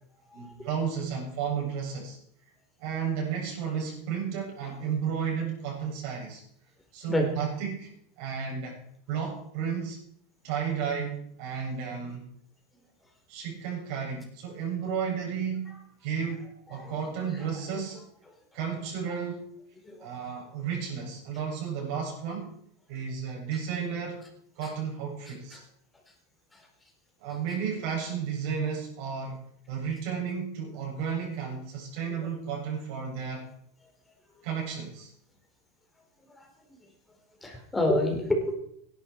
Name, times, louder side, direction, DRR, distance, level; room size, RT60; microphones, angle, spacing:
voice 1, 0.3-2.2 2.8-6.4 6.9-7.9 8.2-8.8 9.1-10.0 10.4-12.3 13.3-15.7 16.0-18.0 18.5-19.5 20.0-22.5 22.9-24.2 24.5-25.6 27.2-29.4 29.7-33.5 34.4-35.1, right 7 dB, 60° right, -2 dB, 7.8 m, -33 dB
voice 2, 16.7-17.3 19.8-20.1 24.6-24.7 25.5-25.6 26.5-26.6 32.1-32.3 36.4-36.5 37.4-38.5, left 1 dB, 10° left, 2 dB, 4.2 m, -29 dB
17.5 x 11.5 x 4.7 m, 0.68 s
supercardioid pair, 135°, 0 cm